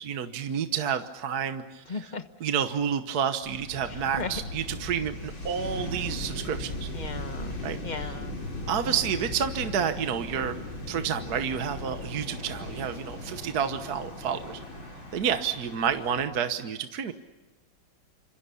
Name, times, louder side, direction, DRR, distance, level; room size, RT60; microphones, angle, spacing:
voice 1, 0.0-2.1 2.4-6.9 7.6-8.2 8.7-10.6 10.9-14.6 15.1-17.1, right 8 dB, 55° right, 8 dB, 1.5 m, -30 dB
voice 2, 1.9-2.2 3.9-4.4 6.9-8.4, left 4 dB, 25° left, 9 dB, 1.1 m, -37 dB
sound 1, 3.4-16.3, left 1 dB, 75° left, 6.1 m, -38 dB
28.5 x 26.5 x 7.0 m, 1.1 s
omnidirectional pair, 2.1 m